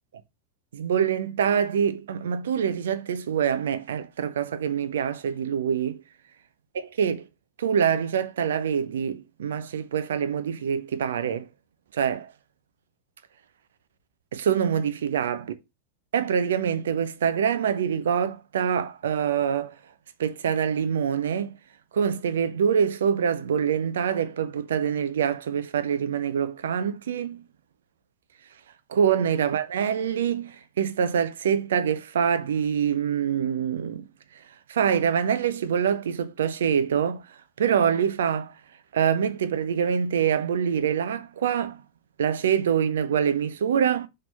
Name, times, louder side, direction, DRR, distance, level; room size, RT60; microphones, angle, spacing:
voice 1, 0.7-6.0 6.7-7.3 7.6-11.5 11.9-12.3 14.3-15.5 16.1-19.7 20.2-21.5 21.9-27.4 28.9-34.1 34.7-37.2 37.6-38.5 38.9-41.8 42.2-44.1, right 8 dB, 65° right, 0.8 m, -25 dB
6.0 x 3.4 x 5.5 m
figure-of-eight pair, 90°, 0 cm